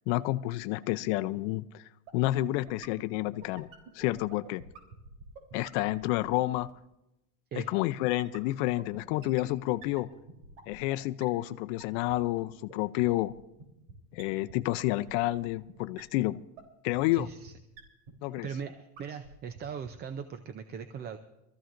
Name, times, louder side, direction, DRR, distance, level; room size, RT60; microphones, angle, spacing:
voice 1, 0.1-1.8 2.1-3.7 3.9-4.6 5.5-6.7 7.5-10.1 10.7-13.3 14.1-16.4 16.8-17.3 18.2-18.5, left 17 dB, 65° left, 11 dB, 0.6 m, -29 dB
sound 1, 2.1-6.7 8.2-10.9 11.2-11.3 11.5-11.6 11.8-11.9 12.1-12.2 12.4-12.5 12.7-12.8 13.0-13.1 13.3-13.4 13.6-13.7 13.9-14.0 14.2-14.3 14.5-14.6 14.8-14.9 15.1-15.4 15.7-15.8 16.0-16.1 16.3-16.4 16.6-16.7 16.9-17.0 17.2-17.3 17.5-17.6 17.8-17.9 18.1-18.2 18.4-18.5 18.7-18.8 19.0-19.3 19.6-19.7 19.9-20.0, right 4 dB, 85° right, 3.7 m, -47 dB
Bass guitar, 9.7-16.0, right 4 dB, 5° right, 1.7 m, -65 dB
voice 2, 17.1-17.5 18.4-21.2, right 7 dB, 25° right, 9 dB, 0.6 m, -39 dB
25.0 x 14.0 x 2.6 m, 0.93 s
cardioid pair, 150°, 37 cm